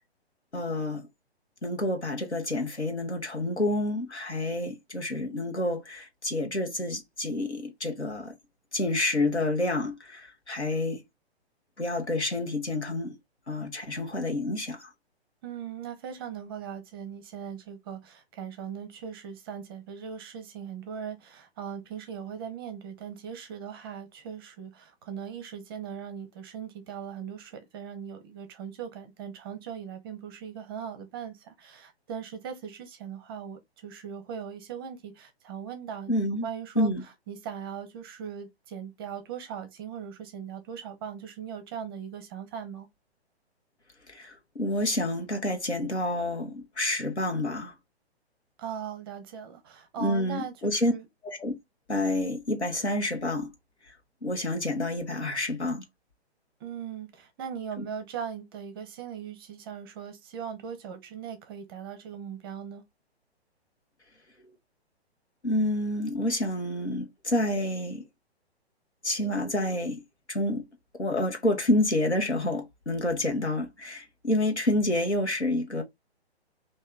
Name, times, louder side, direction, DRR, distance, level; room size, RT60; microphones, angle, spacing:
voice 1, 0.5-1.1 1.6-8.3 8.7-11.0 11.8-13.2 13.5-14.9 36.1-36.5 36.7-37.0 44.1-47.7 50.0-50.9 51.2-51.5 51.9-53.5 54.2-55.8 57.8-57.9 65.4-68.0 69.0-70.0 70.3-70.6 71.0-75.8, left 1 dB, 85° left, 1.2 m, -28 dB
voice 2, 15.4-36.9 37.3-42.9 48.6-51.1 56.6-62.8, right 7 dB, 20° right, 0.6 m, -39 dB
3.2 x 2.6 x 3.6 m
figure-of-eight pair, 125°, 33 cm